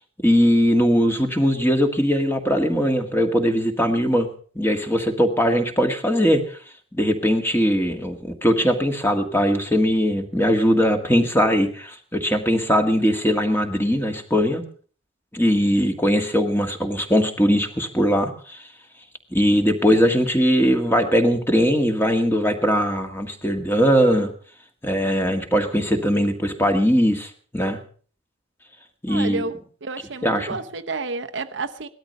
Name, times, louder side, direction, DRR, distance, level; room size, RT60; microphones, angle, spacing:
voice 1, 0.2-4.3 4.6-6.6 6.9-14.6 15.3-18.6 19.3-24.3 24.8-27.8 29.0-29.4 30.2-30.5, equal, 10° left, 1.8 m, -20 dB
voice 2, 29.1-31.9, right 3 dB, 60° right, 0.8 m, -30 dB
18.0 x 13.0 x 5.4 m
head